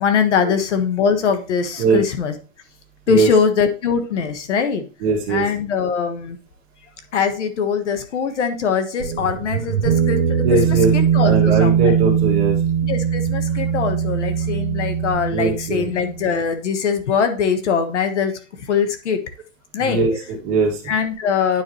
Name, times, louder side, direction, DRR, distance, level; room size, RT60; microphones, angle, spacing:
voice 1, 0.0-2.4 3.1-4.8 5.3-6.4 7.1-10.2 10.5-11.9 12.9-18.3 18.7-19.2 19.7-20.0 20.9-21.6, left 6 dB, 60° left, 8 dB, 1.4 m, -22 dB
voice 2, 5.0-5.4 10.4-10.9 11.2-12.6 15.3-15.9 19.8-20.8, right 4 dB, 25° right, -2 dB, 2.1 m, -20 dB
sound 1, 9.0-16.4, right 8 dB, 50° right, 1.1 m, -20 dB
9.7 x 4.8 x 3.1 m, 0.35 s
hypercardioid pair, 165°, 39 cm